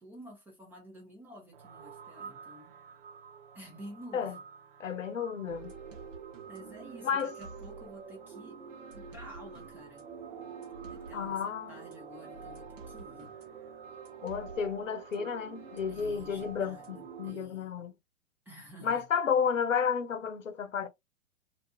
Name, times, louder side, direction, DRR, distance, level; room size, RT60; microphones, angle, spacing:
voice 1, 0.0-2.8 3.5-4.4 6.5-8.6 8.9-10.1 10.9-13.3 15.9-17.7 18.5-19.1, equal, 5° right, 0.3 m, -51 dB
sound 1, 1.5-17.3, right 6 dB, 45° right, 0.7 m, -51 dB
voice 2, 4.8-5.7 7.0-7.3 11.1-11.8 14.2-17.9 18.8-20.9, left 7 dB, 80° left, 0.7 m, -32 dB
sound 2, 5.4-17.4, right 6 dB, 75° right, 1.1 m, -47 dB
2.6 x 2.4 x 2.2 m
figure-of-eight pair, 110°, 38 cm